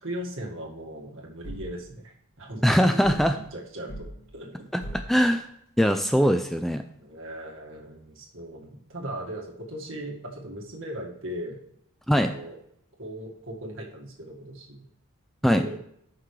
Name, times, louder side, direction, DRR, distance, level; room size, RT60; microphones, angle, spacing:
voice 1, 0.0-3.3 3.5-4.1 4.3-4.7 7.0-11.6 12.1-12.6 13.0-14.8 15.4-15.8, right 1 dB, 65° right, 0 dB, 1.8 m, -38 dB
sound 1, 1.4-1.8 3.0-3.4 3.9-4.1 4.8-5.1, equal, 80° left, 2.4 m, -38 dB
voice 2, 2.6-3.3 4.7-5.4 5.8-6.8 12.1-12.3 15.4-15.6, equal, ahead, 7 dB, 0.3 m, -21 dB
14.5 x 5.9 x 3.3 m, 0.72 s
head